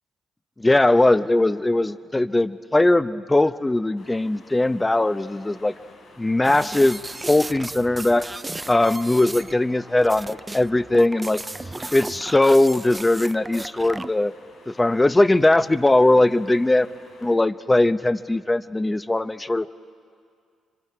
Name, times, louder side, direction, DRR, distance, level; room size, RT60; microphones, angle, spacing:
voice 1, 0.6-5.7 6.2-7.0 7.3-8.3 8.7-11.4 11.9-14.3 14.7-16.9 17.2-19.7, left 2 dB, 15° left, 13 dB, 0.7 m, -20 dB
sound 1, 4.0-17.4, left 2 dB, 60° left, 5.1 m, -51 dB
sound 2, 6.4-14.1, right 2 dB, 20° right, 0.4 m, -35 dB
30.0 x 24.0 x 4.7 m, 2.2 s
supercardioid pair, 65°, 0 cm